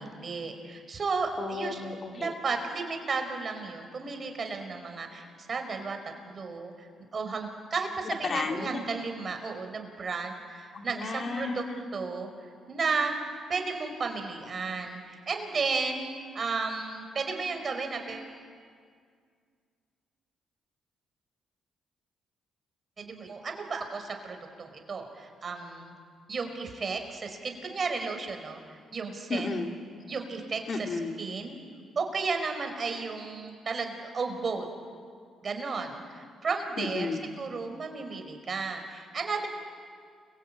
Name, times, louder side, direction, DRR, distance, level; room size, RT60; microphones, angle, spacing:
voice 1, 0.0-1.8 2.1-6.0 6.2-6.9 7.1-11.6 11.9-12.3 12.7-13.2 13.5-16.1 16.3-18.3 23.0-25.9 26.3-29.6 30.1-30.6 31.2-31.6 31.9-34.6 35.4-37.1 37.4-39.5, right 4 dB, 40° right, 5 dB, 4.9 m, -33 dB
voice 2, 1.4-2.4 8.0-8.8 10.7-11.8 29.3-30.0 30.7-31.2 36.8-37.2, left 3 dB, 45° left, 3 dB, 2.7 m, -33 dB
29.5 x 23.0 x 8.8 m, 2.1 s
cardioid pair, 90°, 0 cm